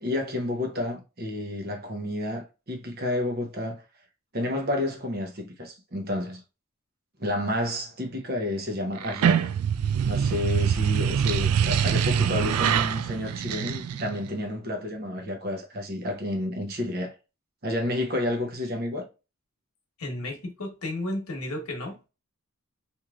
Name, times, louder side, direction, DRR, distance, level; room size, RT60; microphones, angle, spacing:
voice 1, 0.0-3.8 4.3-6.4 7.2-9.5 10.0-17.1 17.6-19.1, left 1 dB, 45° right, 0.7 m, -30 dB
sound 1, 9.0-14.3, right 8 dB, 90° right, 0.3 m, -24 dB
voice 2, 20.0-22.0, left 1 dB, 85° left, 1.0 m, -33 dB
3.1 x 2.6 x 2.3 m
head